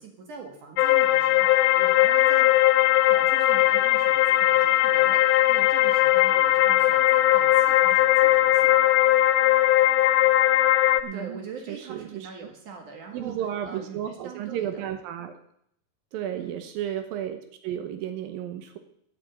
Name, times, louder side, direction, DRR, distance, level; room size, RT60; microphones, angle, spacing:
voice 1, 0.0-2.5 3.0-9.0 11.1-13.4 13.6-14.8 16.3-16.6, right 5 dB, 60° right, 3 dB, 3.0 m, -43 dB
sound 1, 0.8-11.0, left 14 dB, 85° left, 2.4 m, -19 dB
voice 2, 11.0-11.4 11.7-12.5 13.1-15.4 16.1-18.8, right 10 dB, 80° right, 7 dB, 2.7 m, -33 dB
8.9 x 8.8 x 8.4 m, 0.70 s
omnidirectional pair, 4.2 m